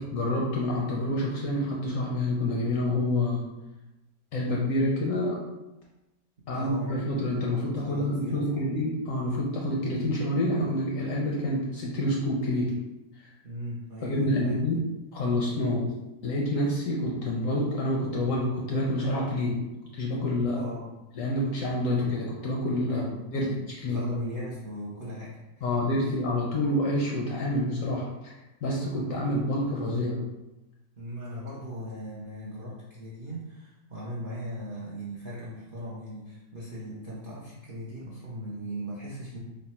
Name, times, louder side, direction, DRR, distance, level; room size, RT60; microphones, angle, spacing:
voice 1, 0.0-3.4 4.3-5.4 6.5-12.7 13.2-13.3 14.0-14.8 15.1-15.9 16.2-19.6 19.9-20.6 21.2-23.0 23.3-23.5 23.8-24.0 25.6-28.3 28.6-30.2, left 1 dB, 70° left, -3 dB, 0.8 m, -27 dB
voice 2, 6.5-8.6 13.4-14.6 20.5-20.9 22.9-23.6 23.9-25.7 26.0-26.1 31.0-39.4, equal, 65° right, -7 dB, 0.5 m, -38 dB
3.2 x 2.2 x 4.2 m, 1.0 s
omnidirectional pair, 1.8 m